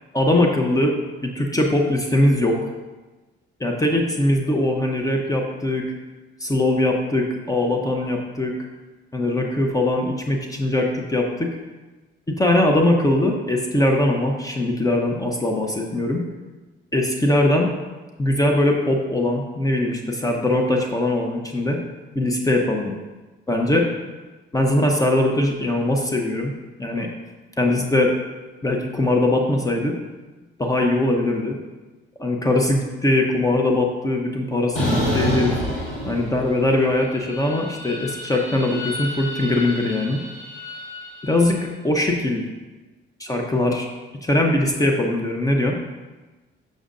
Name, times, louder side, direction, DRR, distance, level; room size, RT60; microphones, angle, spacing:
voice 1, 0.1-0.9 1.2-2.7 3.6-5.9 6.4-8.5 9.1-11.5 12.4-16.2 16.9-17.7 18.2-21.8 22.1-22.9 23.5-23.9 24.5-26.5 26.8-27.1 27.6-28.1 28.6-30.0 30.6-31.6 32.2-35.6 36.0-40.2 41.2-42.5 43.2-43.9 44.2-45.8, left 1 dB, 15° left, 1 dB, 0.7 m, -21 dB
sound 1, 34.8-36.7 37.0-41.3, equal, 70° left, 1.9 m, -29 dB
6.5 x 6.3 x 2.5 m, 1.2 s
cardioid pair, 90°, 20 cm